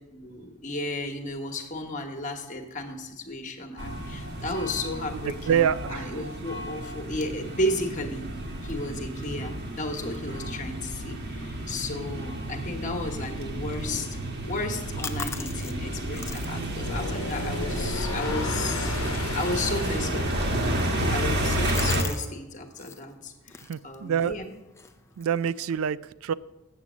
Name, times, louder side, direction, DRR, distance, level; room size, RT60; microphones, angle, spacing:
voice 1, 0.1-8.3 8.6-19.0 19.3-20.5 21.1-23.6 23.8-24.4, left 1 dB, 35° left, 4 dB, 1.2 m, -33 dB
sound 1, 3.8-22.0, right 1 dB, 50° right, 1.2 m, -31 dB
voice 2, 5.2-6.2 16.4-16.9 23.7-24.4 25.2-26.3, right 8 dB, 70° right, 18 dB, 0.3 m, -27 dB
sound 2, 14.6-22.3 22.6-23.0 23.5-25.8, left 5 dB, 10° left, 0.4 m, -43 dB
sound 3, 16.7-21.8, left 3 dB, 65° left, 0.9 m, -36 dB
8.2 x 7.4 x 6.1 m, 1.1 s
head